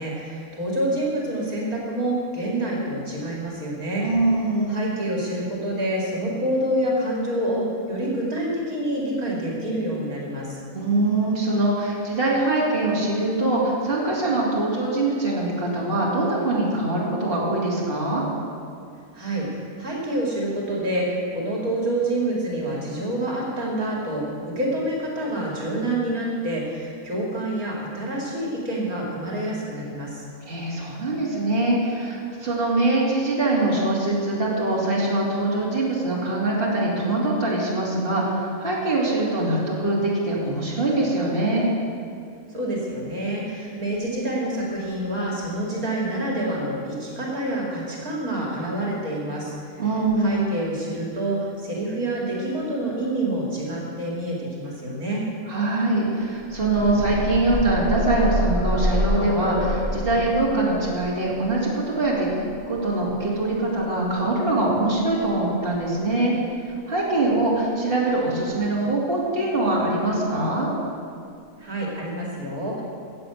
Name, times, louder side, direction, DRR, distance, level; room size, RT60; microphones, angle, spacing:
voice 1, 0.0-4.1 4.7-10.6 19.1-30.3 42.5-49.8 50.2-55.3 71.6-72.8, right 1 dB, 75° right, -3 dB, 2.9 m, -27 dB
voice 2, 4.0-4.8 10.7-18.2 30.4-41.7 49.8-50.4 55.5-66.3 66.6-70.7, right 2 dB, 40° right, -5 dB, 3.1 m, -23 dB
sound 1, 56.3-64.1 65.2-65.3 65.7-65.8, equal, 25° left, 1.0 m, -28 dB
15.5 x 7.9 x 8.1 m, 2.4 s
omnidirectional pair, 1.5 m